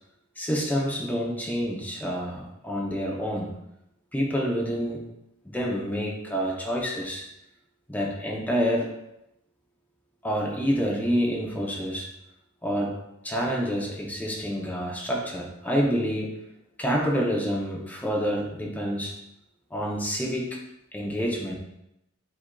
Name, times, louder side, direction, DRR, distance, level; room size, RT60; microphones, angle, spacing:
voice 1, 0.4-3.5 4.1-5.1 5.4-7.2 7.9-8.9 10.2-12.1 12.6-13.0 13.2-16.4 16.8-19.2 19.7-20.6 20.9-21.6, equal, 10° left, -2 dB, 0.6 m, -28 dB
7.4 x 2.5 x 2.2 m, 0.85 s
head